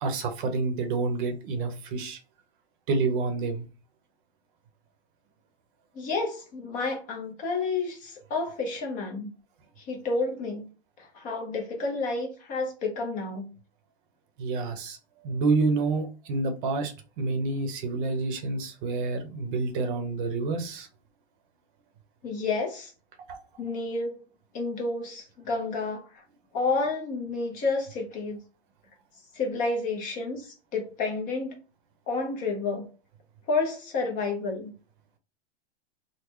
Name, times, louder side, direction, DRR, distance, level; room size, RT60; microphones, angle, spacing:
voice 1, 0.0-2.2 2.9-3.7 14.4-15.0 15.2-20.9 23.3-23.4, right 3 dB, 50° right, 0.8 m, -28 dB
voice 2, 5.9-9.3 9.8-10.7 11.0-13.5 22.2-22.9 23.6-24.2 24.5-26.2 26.5-28.4 29.3-31.6 32.1-32.9 33.5-34.7, left 3 dB, 25° left, 0.6 m, -30 dB
3.7 x 2.1 x 3.0 m
supercardioid pair, 150°, 33 cm